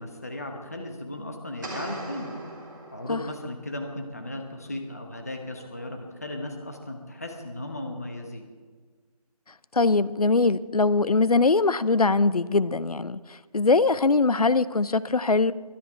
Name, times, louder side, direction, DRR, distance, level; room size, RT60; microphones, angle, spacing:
voice 1, 0.0-2.3 2.9-8.4, left 1 dB, 25° left, 3 dB, 1.1 m, -36 dB
sound 1, 1.6-3.5, right 1 dB, 30° right, 2.6 m, -39 dB
voice 2, 9.7-13.2 13.5-15.5, left 3 dB, 65° left, 17 dB, 0.7 m, -22 dB
22.5 x 10.5 x 4.6 m, 1.5 s
figure-of-eight pair, 175°, 21 cm